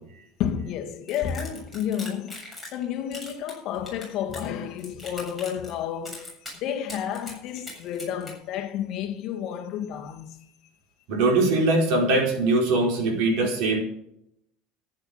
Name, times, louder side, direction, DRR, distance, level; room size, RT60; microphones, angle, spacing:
voice 1, 0.4-2.4 2.7-10.3, left 9 dB, 45° left, 1.7 m, -31 dB
sound 1, 1.1-2.8 3.1-4.5 4.8-5.7 6.0-6.5 6.9-8.3, left 2 dB, 5° right, 7.4 m, -40 dB
voice 2, 11.1-13.8, right 2 dB, 60° right, 4.9 m, -21 dB
14.5 x 10.0 x 5.6 m
cardioid pair, 165°, 0 cm